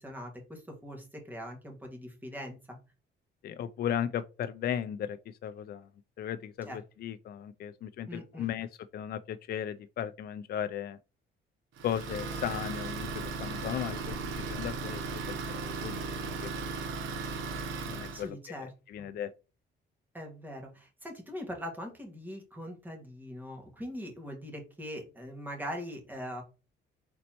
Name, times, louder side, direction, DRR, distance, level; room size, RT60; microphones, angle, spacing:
voice 1, 0.0-2.8 6.7-6.8 8.1-8.5 18.1-18.7 19.0-19.1 20.1-26.4, equal, 10° right, 1.8 m, -41 dB
voice 2, 3.4-5.2 5.4-5.8 6.2-8.7 8.9-11.0 11.8-13.1 13.4-14.2 14.5-15.0 15.3-16.6 17.9-19.3, left 9 dB, 50° left, 0.4 m, -36 dB
Idling, 11.8-18.3, right 3 dB, 90° right, 1.0 m, -36 dB
4.3 x 4.1 x 2.9 m
cardioid pair, 90°, 20 cm